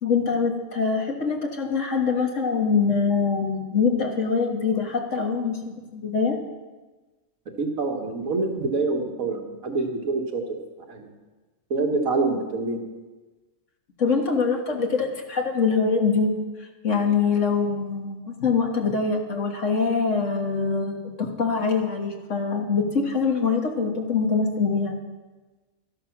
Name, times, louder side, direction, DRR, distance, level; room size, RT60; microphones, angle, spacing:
voice 1, 0.0-6.4 14.0-16.3 16.8-24.9, left 5 dB, 65° left, 1 dB, 1.8 m, -24 dB
voice 2, 7.6-10.4 10.9-11.1 11.7-12.8, right 3 dB, 90° right, 2 dB, 2.0 m, -26 dB
13.0 x 11.0 x 6.0 m, 1.2 s
omnidirectional pair, 1.4 m